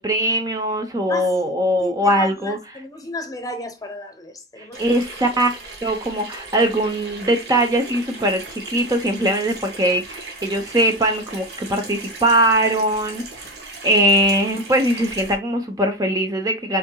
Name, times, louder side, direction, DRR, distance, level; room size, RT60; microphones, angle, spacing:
voice 1, 0.0-2.6 4.6-5.5 5.8-13.2 13.8-16.8, right 1 dB, 20° right, 0.6 m, -20 dB
voice 2, 1.1-1.5 1.8-5.4 13.9-14.0, left 2 dB, 20° left, 0.8 m, -33 dB
Water tap faucet / Sink (filling or washing), 4.7-15.4, right 3 dB, 60° right, 1.6 m, -38 dB
5.8 x 3.7 x 2.2 m
head